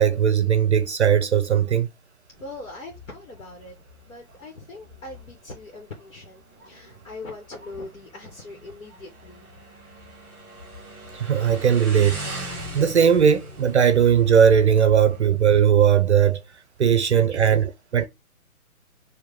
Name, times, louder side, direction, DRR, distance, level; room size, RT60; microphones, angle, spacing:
voice 1, 0.0-1.9 11.1-12.2 12.7-16.4 16.8-18.1, right 8 dB, 50° right, 0.5 m, -18 dB
Motorcycle, 2.3-15.3, right 1 dB, 5° left, 0.7 m, -41 dB
voice 2, 2.4-3.8 4.0-9.5 16.8-17.5, left 2 dB, 60° left, 1.7 m, -41 dB
4.8 x 2.7 x 3.5 m
hypercardioid pair, 155°, 44 cm